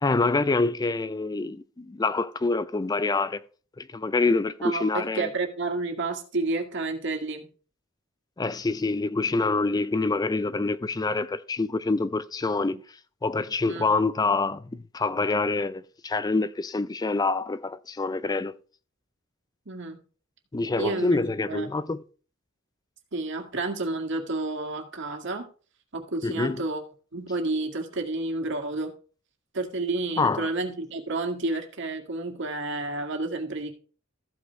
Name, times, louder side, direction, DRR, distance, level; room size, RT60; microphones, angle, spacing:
voice 1, 0.0-3.4 3.8-5.3 8.4-18.6 20.5-22.0 26.2-26.6 30.2-30.5, left 3 dB, 20° left, 0.4 m, -26 dB
voice 2, 4.6-7.5 13.7-14.0 19.7-20.0 20.8-21.2 21.5-21.7 23.1-25.5 25.9-26.8 27.1-28.9 29.5-33.7, right 2 dB, 65° right, 2.0 m, -30 dB
14.5 x 5.3 x 4.7 m
head